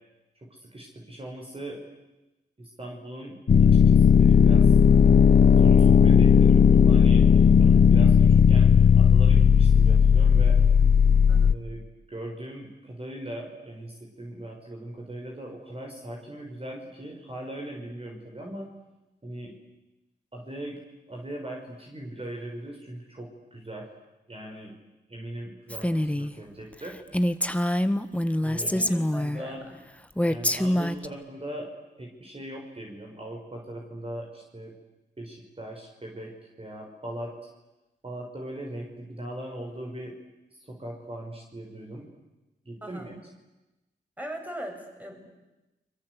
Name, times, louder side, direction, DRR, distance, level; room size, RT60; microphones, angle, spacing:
voice 1, 0.4-1.8 2.6-3.4 3.7-4.7 5.5-7.3 7.6-10.6 11.4-11.8 12.1-18.7 19.2-19.5 20.3-20.8 21.1-23.9 24.3-24.7 25.1-27.0 28.4-28.8 29.1-29.6 30.3-31.7 32.0-34.7 35.2-36.3 36.6-37.3 38.0-40.1 40.6-42.1 42.6-43.2, right 1 dB, 30° right, 0 dB, 6.2 m, -39 dB
sound 1, 3.5-11.5, left 7 dB, 55° left, 1.0 m, -16 dB
voice 2, 11.3-11.7 28.6-29.8 42.8-43.2 44.2-45.4, right 1 dB, 10° right, 3 dB, 7.7 m, -40 dB
Female speech woman speaking, 25.7-26.3 26.7-26.8 27.1-29.4 30.2-31.1, left 1 dB, 5° left, 1.6 m, -25 dB
29.5 x 22.5 x 8.3 m, 1.0 s
cardioid pair, 45°, 19 cm